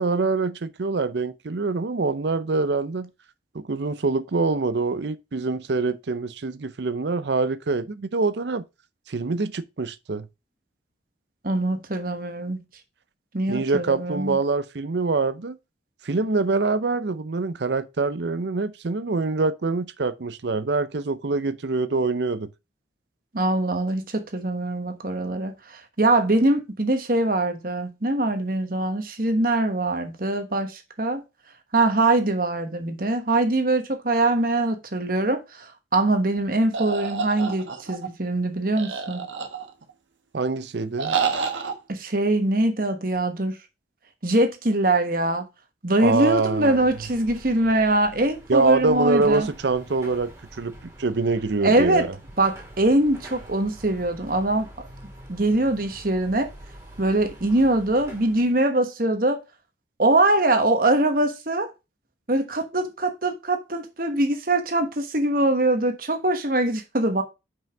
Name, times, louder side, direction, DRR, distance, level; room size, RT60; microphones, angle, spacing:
voice 1, 0.0-3.1 3.5-8.6 9.1-10.3 13.5-15.6 16.0-22.5 40.3-41.2 46.0-46.8 48.5-50.3 50.6-52.1, right 3 dB, 65° right, 0.6 m, -25 dB
voice 2, 11.4-12.6 13.3-14.4 23.3-31.2 31.7-39.3 41.9-43.6 44.2-45.5 45.8-49.5 51.6-52.0 52.4-54.7 55.3-56.5 57.0-59.4 60.0-61.7 62.3-67.2, right 2 dB, 50° right, 1.2 m, -23 dB
sound 1, 36.7-38.1 38.8-39.9 41.0-41.7, right 5 dB, 85° right, 1.2 m, -28 dB
Car passing by / Traffic noise roadway noise / Engine, 46.0-58.6, right 1 dB, 15° right, 2.0 m, -45 dB
5.6 x 5.4 x 5.0 m
head